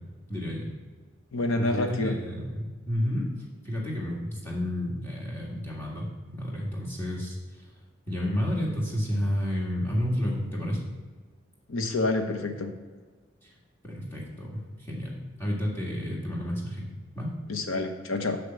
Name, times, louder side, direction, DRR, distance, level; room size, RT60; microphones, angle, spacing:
voice 1, 0.3-0.7 1.6-3.3 3.6-7.7 8.1-10.8 13.4-13.5 13.8-16.9 17.2-17.3, equal, 10° left, -5 dB, 1.8 m, -31 dB
voice 2, 1.3-2.2 11.7-12.7 17.5-18.4, left 2 dB, 90° left, 5 dB, 1.0 m, -28 dB
6.6 x 5.8 x 6.8 m, 1.4 s
head